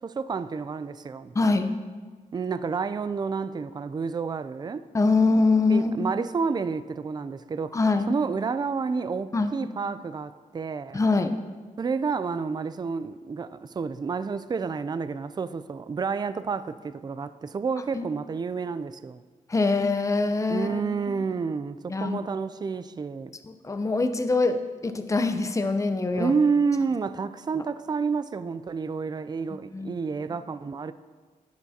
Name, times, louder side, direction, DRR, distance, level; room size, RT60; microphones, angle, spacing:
voice 1, 0.0-1.3 2.3-4.9 5.7-7.8 8.1-11.0 11.8-19.2 20.5-23.4 26.2-30.9, right 5 dB, 30° right, 0.4 m, -29 dB
voice 2, 1.3-1.7 4.9-6.1 7.7-8.1 9.3-9.5 10.9-11.3 17.9-18.0 19.5-21.2 21.9-22.2 23.4-26.3 27.6-27.7 29.5-29.9, left 3 dB, 20° left, 0.6 m, -24 dB
10.5 x 9.4 x 2.8 m
cardioid pair, 85°, 14 cm